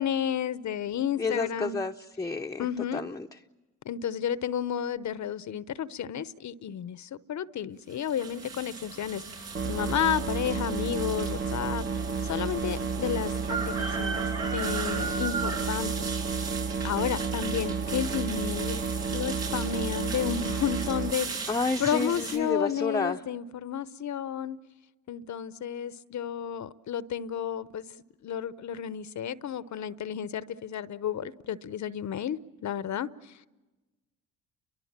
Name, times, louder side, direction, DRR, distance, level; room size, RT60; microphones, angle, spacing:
voice 1, 0.0-1.8 2.6-3.0 3.8-11.8 12.2-14.2 14.5-16.1 16.8-18.8 19.1-21.5 21.8-24.6 25.1-27.8 28.2-33.3, left 9 dB, 50° left, 0.9 m, -32 dB
voice 2, 1.2-2.7 2.9-3.3 21.5-23.2, left 3 dB, 10° left, 0.8 m, -30 dB
sound 1, 7.9-22.4, right 5 dB, 80° right, 6.9 m, -37 dB
sound 2, 9.5-21.1, right 5 dB, 30° right, 1.1 m, -32 dB
30.0 x 23.5 x 7.4 m
supercardioid pair, 60°, 37 cm